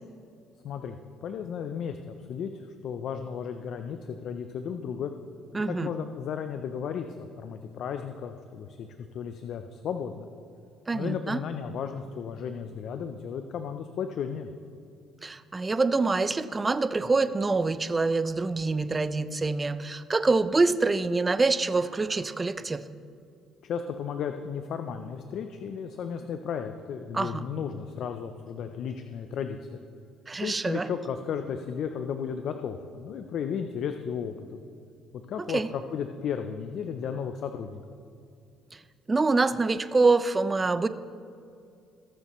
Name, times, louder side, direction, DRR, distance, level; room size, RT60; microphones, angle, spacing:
voice 1, 0.6-5.1 5.7-8.9 9.1-10.3 10.9-14.5 23.6-29.8 30.4-34.6 35.3-37.8, left 7 dB, 60° left, 7 dB, 0.5 m, -34 dB
voice 2, 5.5-5.9 10.9-11.4 15.2-22.8 27.1-27.5 30.3-30.9 35.5-35.7 39.1-40.9, right 3 dB, 20° right, 13 dB, 0.4 m, -25 dB
19.0 x 6.7 x 3.1 m, 2.5 s
cardioid pair, 95°, 0 cm